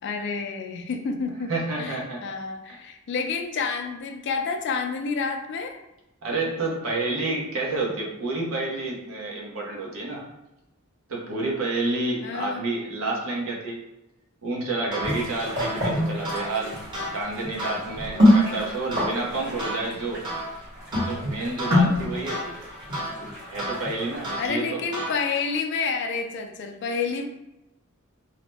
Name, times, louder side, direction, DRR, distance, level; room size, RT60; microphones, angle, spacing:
voice 1, 0.0-5.8 12.2-12.7 18.4-18.7 24.4-27.3, left 5 dB, 55° left, 5 dB, 0.4 m, -29 dB
voice 2, 1.5-2.2 6.2-10.2 11.1-13.8 14.4-16.7 17.1-20.2 21.0-22.5 23.5-24.8, right 2 dB, 75° right, -2 dB, 0.8 m, -29 dB
sound 1, 14.9-25.5, equal, 20° right, 0.8 m, -35 dB
sound 2, 15.0-24.4, left 1 dB, 55° right, 1.4 m, -26 dB
2.7 x 2.0 x 3.3 m, 0.94 s
head